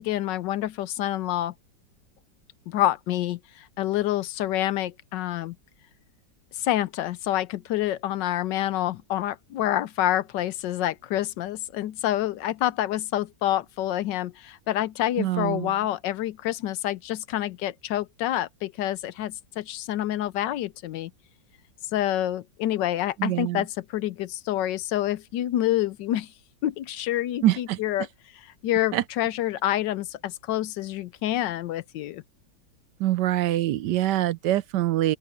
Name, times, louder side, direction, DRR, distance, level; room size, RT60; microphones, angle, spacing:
voice 1, 0.0-1.5 2.7-5.6 6.6-21.1 21.9-26.3 26.6-28.1 28.3-32.2, left 13 dB, 75° left, 1.3 m, -27 dB
voice 2, 15.2-15.7 23.2-23.6 27.4-27.8 28.9-29.0 33.0-35.2, right 14 dB, 75° right, 1.1 m, -24 dB
open air
omnidirectional pair, 2.0 m